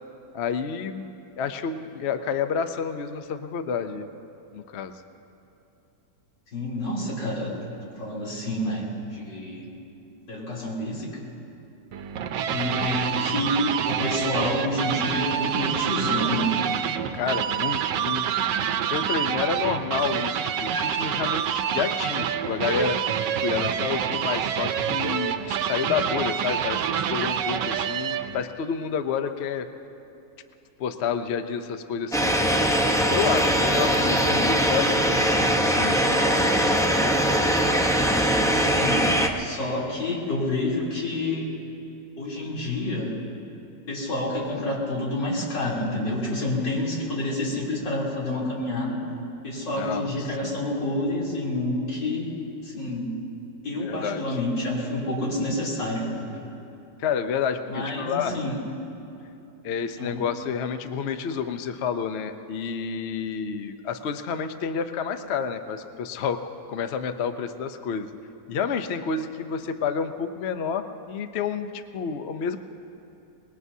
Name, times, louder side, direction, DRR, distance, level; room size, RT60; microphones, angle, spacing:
voice 1, 0.3-4.1 4.5-4.9 17.1-23.0 23.4-29.7 30.8-32.7 33.1-34.9 35.6-36.5 49.7-50.1 50.4-50.6 53.8-54.4 57.0-58.4 59.6-66.4 66.7-68.1 68.5-72.6, left 6 dB, 60° left, 9 dB, 0.7 m, -29 dB
voice 2, 6.5-9.7 10.3-11.2 12.5-16.6 38.3-39.1 39.4-41.5 42.2-43.1 43.9-49.0 49.4-52.3 52.6-53.2 53.6-56.5 57.7-58.6 59.9-60.2, left 1 dB, 90° left, -6 dB, 4.0 m, -28 dB
sound 1, 11.9-28.4, right 9 dB, 80° right, 1.3 m, -27 dB
sound 2, 32.1-39.3, equal, 5° left, 0.4 m, -21 dB
24.5 x 21.0 x 2.8 m, 2.8 s
omnidirectional pair, 1.9 m